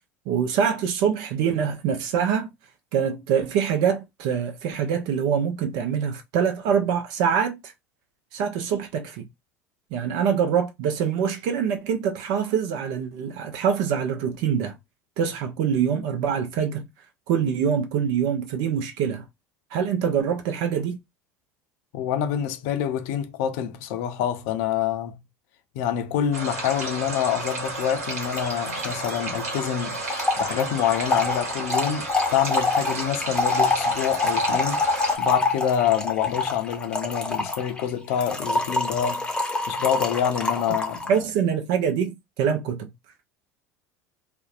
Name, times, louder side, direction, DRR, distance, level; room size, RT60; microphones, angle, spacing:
voice 1, 0.3-2.5 2.9-7.7 8.3-9.3 9.9-14.7 15.2-16.9 17.3-19.2 19.7-21.0 41.1-42.9, right 7 dB, 60° right, 0.6 m, -24 dB
voice 2, 21.9-25.2 25.7-30.0 30.4-39.3 39.7-41.0, left 9 dB, 65° left, 0.5 m, -26 dB
sound 1, 26.3-35.2, right 2 dB, 80° right, 1.1 m, -32 dB
Trickle dribble / Fill (with liquid), 27.5-27.6 27.8-27.9 28.1-41.2, left 3 dB, 10° left, 0.7 m, -26 dB
2.6 x 2.1 x 2.4 m
hypercardioid pair, 75°, 8 cm